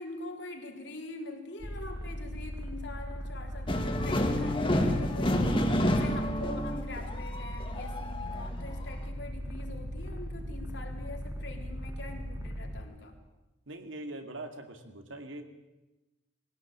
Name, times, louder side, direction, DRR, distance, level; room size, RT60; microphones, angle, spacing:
voice 1, 0.0-13.2, left 2 dB, 65° left, 2 dB, 3.7 m, -44 dB
sound 1, 1.6-12.8, equal, 15° right, 2.3 m, -39 dB
sound 2, 3.7-8.7, left 1 dB, 25° left, 1.9 m, -29 dB
voice 2, 13.7-15.4, right 2 dB, 85° right, 7 dB, 2.5 m, -42 dB
21.0 x 17.0 x 8.7 m, 1.0 s
head